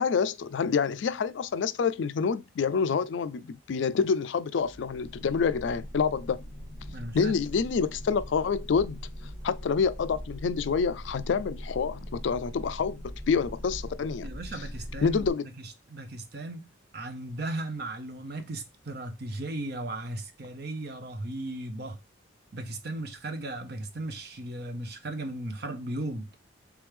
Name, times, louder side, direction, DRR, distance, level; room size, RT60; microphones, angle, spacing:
voice 1, 0.0-6.4 7.1-9.0 9.4-14.3 15.0-15.4, left 5 dB, 70° left, 0.3 m, -27 dB
sound 1, 4.6-15.3, equal, 20° right, 1.0 m, -41 dB
voice 2, 6.9-7.3 14.2-15.3 15.6-16.7 16.9-22.0 22.5-26.3, right 2 dB, 50° right, 0.6 m, -36 dB
3.4 x 3.3 x 3.2 m
head